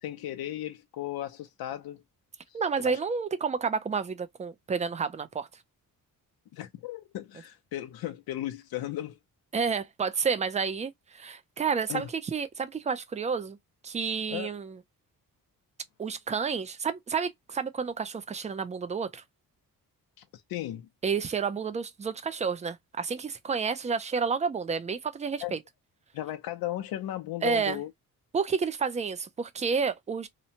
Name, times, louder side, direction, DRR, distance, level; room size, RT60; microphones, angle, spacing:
voice 1, 0.0-2.0 2.5-3.0 6.5-9.2 11.9-12.1 14.3-14.5 20.3-20.9 25.4-25.5 26.1-27.9, left 13 dB, 85° left, 0.5 m, -36 dB
voice 2, 2.5-5.5 9.5-13.6 13.8-14.8 16.0-19.2 21.0-25.6 27.4-27.8 28.3-30.3, right 5 dB, 20° right, 0.3 m, -30 dB
2.8 x 2.1 x 2.7 m
cardioid pair, 135°, 36 cm